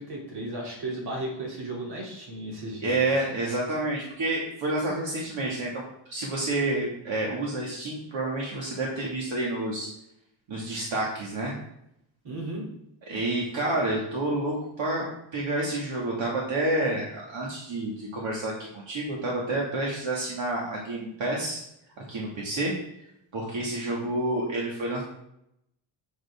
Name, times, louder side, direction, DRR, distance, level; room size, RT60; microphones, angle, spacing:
voice 1, 0.0-3.0 12.2-12.6, right 1 dB, 55° right, -3 dB, 3.1 m, -35 dB
voice 2, 2.8-9.9 10.5-11.5 13.1-15.0 15.3-21.6 22.1-22.7 23.3-25.0, right 2 dB, 70° right, -3 dB, 2.2 m, -29 dB
8.9 x 8.2 x 3.7 m, 0.78 s
wide cardioid pair, 165°, 48 cm